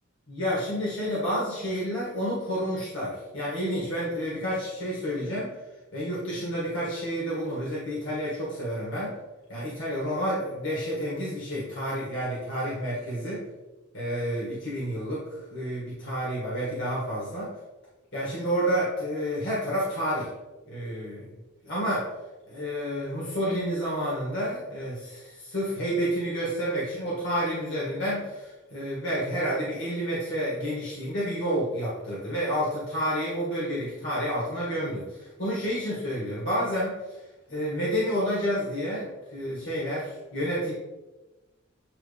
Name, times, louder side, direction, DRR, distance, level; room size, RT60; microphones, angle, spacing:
voice 1, 0.3-5.5 5.9-9.1 9.5-13.4 13.9-17.5 18.1-20.3 20.7-21.3 21.6-22.1 22.5-36.9 37.5-40.7, equal, 60° left, -7 dB, 2.0 m, -30 dB
9.1 x 3.2 x 3.5 m, 1.1 s
head